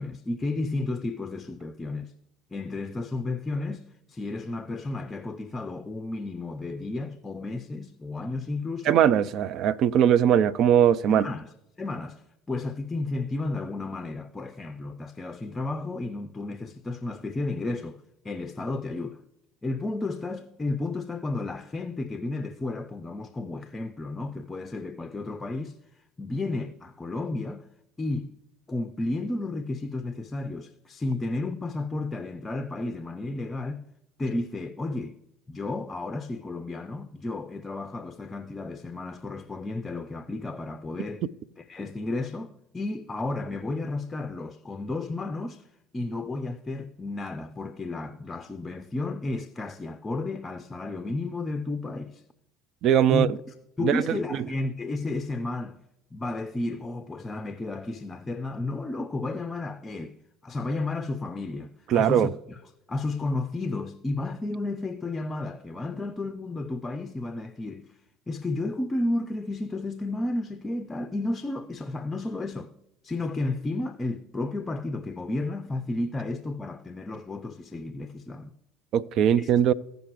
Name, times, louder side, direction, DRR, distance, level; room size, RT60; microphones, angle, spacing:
voice 1, 0.0-2.1 2.5-9.0 11.1-19.2 19.6-25.8 26.2-27.7 28.0-28.3 28.7-33.8 34.2-35.2 35.5-41.2 41.6-45.7 45.9-52.2 53.1-53.3 53.8-55.8 56.1-60.2 60.4-62.6 62.9-68.0 68.3-72.7 73.0-78.5 79.4-79.5, left 2 dB, 20° left, 0.5 m, -32 dB
voice 2, 8.9-11.3 52.8-53.3 53.8-54.0 61.9-62.3 78.9-79.7, right 9 dB, 50° right, 0.4 m, -20 dB
15.5 x 5.2 x 3.0 m
figure-of-eight pair, 65°, 0 cm